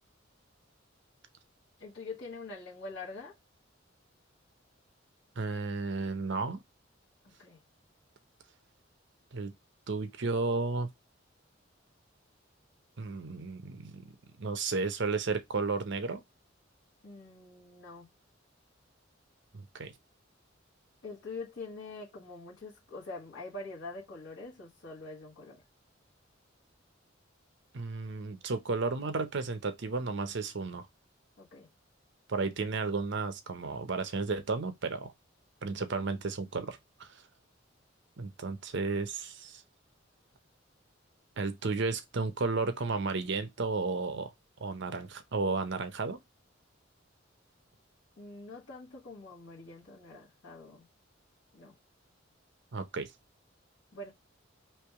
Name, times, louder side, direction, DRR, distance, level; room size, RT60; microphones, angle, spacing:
voice 1, 1.8-3.4 7.2-7.6 17.0-18.1 21.0-25.6 31.4-31.7 48.2-50.9 51.5-51.7 53.9-54.1, left 3 dB, 65° left, 1.3 m, -44 dB
voice 2, 5.4-6.6 9.3-9.5 9.9-10.9 13.0-14.1 14.4-16.2 19.5-19.9 27.7-30.9 32.3-35.1 35.6-37.2 38.2-39.6 41.4-44.3 44.6-46.2 52.7-53.1, right 3 dB, 65° right, 0.7 m, -33 dB
3.3 x 3.0 x 4.6 m
head